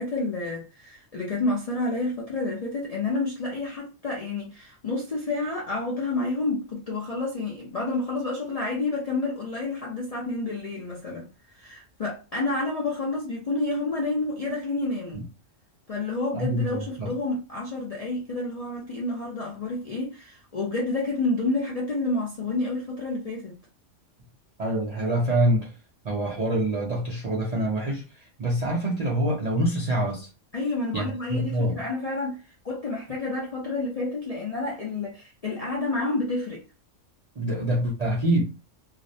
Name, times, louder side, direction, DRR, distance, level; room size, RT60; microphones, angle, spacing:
voice 1, 0.0-11.3 11.5-15.2 15.9-23.6 30.5-36.6, left 2 dB, 55° left, 0.4 m, -29 dB
voice 2, 16.3-17.1 24.6-25.7 26.0-28.0 28.4-30.3 30.9-31.8 37.4-38.4, right 1 dB, 55° right, 0.4 m, -25 dB
2.5 x 2.0 x 2.6 m
omnidirectional pair, 1.3 m